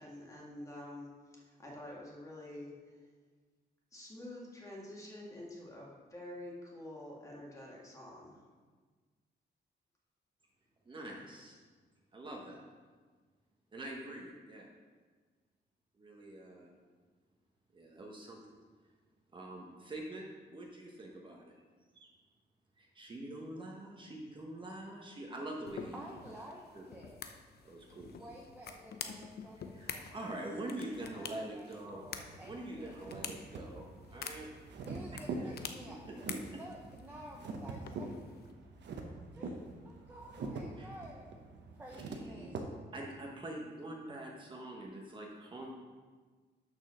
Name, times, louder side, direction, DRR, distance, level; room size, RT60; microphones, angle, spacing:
voice 1, 0.0-3.0 3.9-8.4, left 1 dB, 15° left, -4 dB, 1.8 m, -48 dB
voice 2, 10.9-11.6 12.1-12.7 13.7-14.7 16.0-16.7 17.7-18.6 19.3-21.5 21.9-22.1 22.8-26.1 26.7-26.9 27.6-28.1 29.7-34.5 35.4-35.5 35.9-36.0 36.3-36.6 40.8-40.9 42.0-42.5 42.9-45.7, right 1 dB, 25° right, -1 dB, 1.1 m, -45 dB
sound 1, 25.7-38.5, left 6 dB, 60° left, 0.6 m, -48 dB
voice 3, 25.9-27.2 28.1-30.2 30.5-30.6 31.5-33.0 34.9-38.2 39.4-39.6 39.8-41.3 41.7-42.6, right 1 dB, 10° right, -1 dB, 0.8 m, -51 dB
sound 2, 31.9-42.6, right 3 dB, 75° right, 1.1 m, -45 dB
6.6 x 6.3 x 6.2 m, 1.4 s
wide cardioid pair, 170°, 18 cm